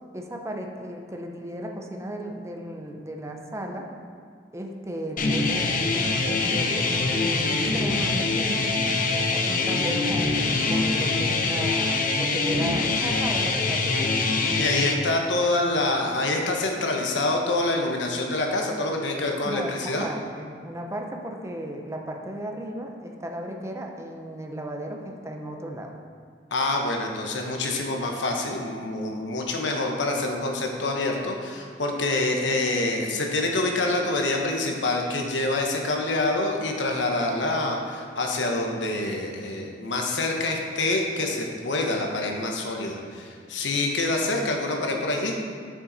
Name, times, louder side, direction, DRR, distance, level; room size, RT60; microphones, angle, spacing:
voice 1, 0.1-3.9 4.5-8.7 9.1-14.2 14.4-14.7 19.4-25.9, equal, 15° right, 2 dB, 0.7 m, -35 dB
sound 1, 5.2-14.9, left 3 dB, 50° left, 0.7 m, -24 dB
voice 2, 14.5-20.1 26.5-45.4, left 2 dB, 90° left, 1 dB, 1.0 m, -26 dB
7.8 x 6.3 x 4.1 m, 2.2 s
head